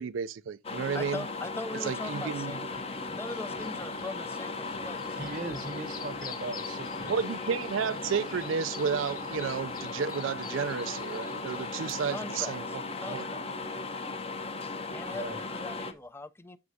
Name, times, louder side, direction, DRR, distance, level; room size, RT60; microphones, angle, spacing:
voice 1, 0.0-1.2 1.8-2.6 7.1-12.6 13.1-13.3, right 6 dB, 85° right, 0.4 m, -32 dB
sound 1, 0.6-15.9, left 3 dB, 30° left, 0.8 m, -37 dB
voice 2, 0.9-2.8 3.0-5.3 12.1-13.4 14.9-16.6, left 2 dB, 10° left, 0.4 m, -41 dB
sound 2, 2.7-11.9, left 6 dB, 45° left, 1.5 m, -49 dB
voice 3, 5.2-7.1 15.1-15.4, right 3 dB, 50° right, 0.8 m, -39 dB
9.6 x 5.9 x 2.7 m
head